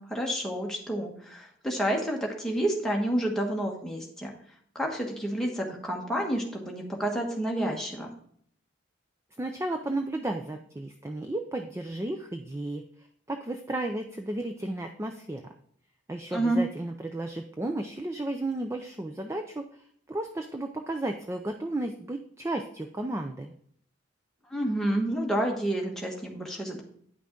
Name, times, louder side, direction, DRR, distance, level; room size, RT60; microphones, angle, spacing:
voice 1, 0.0-4.3 4.7-8.1 16.3-16.6 24.5-26.8, right 1 dB, ahead, -1 dB, 1.2 m, -29 dB
voice 2, 9.4-15.4 16.1-23.5, right 1 dB, 15° right, 5 dB, 0.4 m, -33 dB
9.6 x 5.9 x 3.7 m, 0.63 s
head